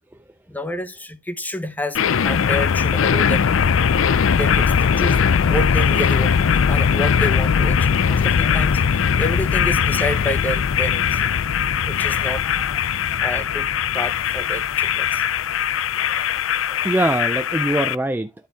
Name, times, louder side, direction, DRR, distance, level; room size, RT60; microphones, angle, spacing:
voice 1, 0.5-3.8 4.3-5.2 5.5-11.2 11.9-12.5 13.2-13.7 13.9-15.2, equal, 10° left, 0.9 m, -29 dB
sound 1, 1.9-17.9, left 7 dB, 85° left, 0.5 m, -20 dB
voice 2, 15.9-16.2 16.7-18.5, right 1 dB, 10° right, 0.4 m, -23 dB
12.0 x 4.4 x 3.5 m
head